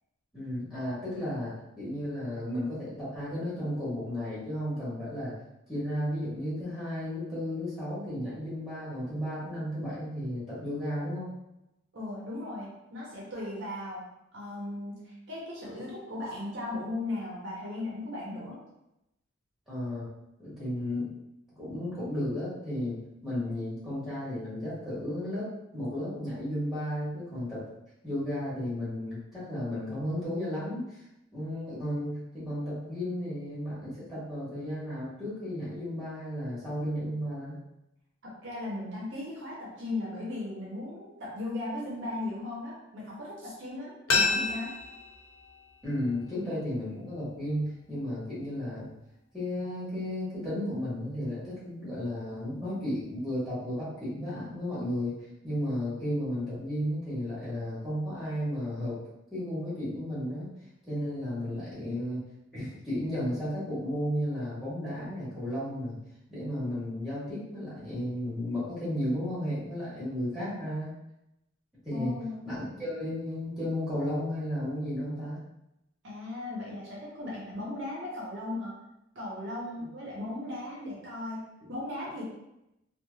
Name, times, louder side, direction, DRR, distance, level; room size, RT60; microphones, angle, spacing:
voice 1, 0.3-5.3 5.7-11.3 19.7-20.0 20.4-21.1 21.6-23.0 23.2-27.6 28.0-31.0 31.3-37.6 45.8-48.9 49.3-55.1 55.4-58.9 59.3-60.5 60.8-62.2 62.5-65.9 66.3-70.9 71.8-72.1 72.4-75.4, left 1 dB, ahead, -11 dB, 1.4 m, -33 dB
voice 2, 11.9-14.0 14.3-18.6 38.4-44.7 71.9-72.4 76.0-78.7 79.1-82.2, left 2 dB, 55° right, -5 dB, 0.7 m, -37 dB
sound 1, 44.1-46.9 47.2-47.3, left 3 dB, 70° left, 0.5 m, -31 dB
3.1 x 2.3 x 2.3 m, 0.87 s
head